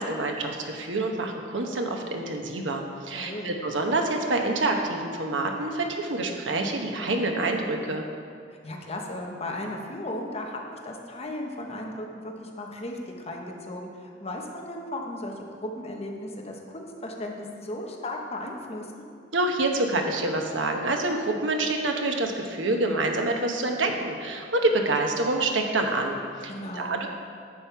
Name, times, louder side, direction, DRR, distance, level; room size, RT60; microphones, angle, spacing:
voice 1, 0.0-8.0 19.3-27.1, right 2 dB, 90° right, 3 dB, 1.1 m, -27 dB
voice 2, 3.1-3.6 8.6-19.0 26.5-26.9, left 1 dB, 35° left, 1 dB, 1.0 m, -36 dB
10.5 x 7.5 x 4.6 m, 2.3 s
head